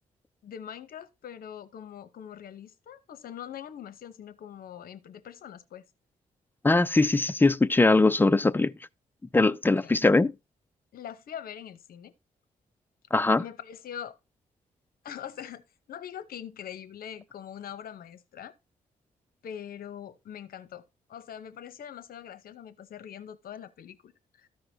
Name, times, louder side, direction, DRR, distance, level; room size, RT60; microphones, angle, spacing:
voice 1, 0.4-5.8 9.7-9.9 10.9-12.1 13.4-14.2 15.0-15.6 15.9-18.5 19.4-20.8 21.1-24.5, left 9 dB, 75° left, 0.8 m, -42 dB
voice 2, 6.6-8.7 9.3-10.3 13.1-13.4, left 3 dB, 15° left, 0.4 m, -21 dB
13.5 x 4.8 x 2.7 m
cardioid pair, 85°, 15 cm